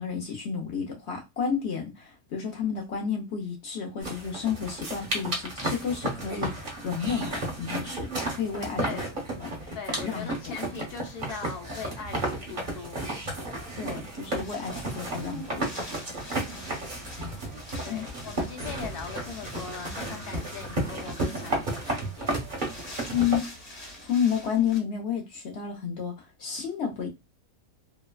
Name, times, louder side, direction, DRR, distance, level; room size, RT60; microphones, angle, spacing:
voice 1, 0.0-9.0 9.4-9.8 10.0-10.5 13.8-15.7 17.9-18.1 23.1-23.5 24.0-27.1, left 7 dB, 60° left, 0.7 m, -31 dB
sound 1, 4.0-23.4, right 1 dB, 40° right, 0.9 m, -33 dB
voice 2, 8.8-9.2 9.7-13.0 16.4-17.1 17.5-17.6 17.8-22.4, left 5 dB, 75° left, 1.2 m, -40 dB
Wind, 13.6-24.8, left 1 dB, 35° left, 1.3 m, -46 dB
sound 2, 19.9-23.5, equal, 65° right, 1.0 m, -50 dB
3.2 x 2.1 x 2.2 m
omnidirectional pair, 1.7 m